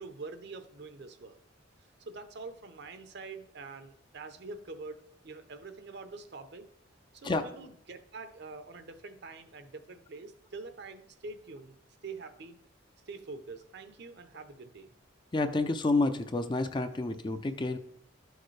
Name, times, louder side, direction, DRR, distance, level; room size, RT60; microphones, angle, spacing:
voice 1, 0.0-1.4 2.1-6.7 7.1-11.8 12.0-12.6 13.1-14.9, right 3 dB, 55° right, 9 dB, 0.7 m, -45 dB
voice 2, 15.3-17.8, left 2 dB, 25° left, 9 dB, 0.4 m, -29 dB
12.5 x 6.4 x 3.2 m, 0.73 s
head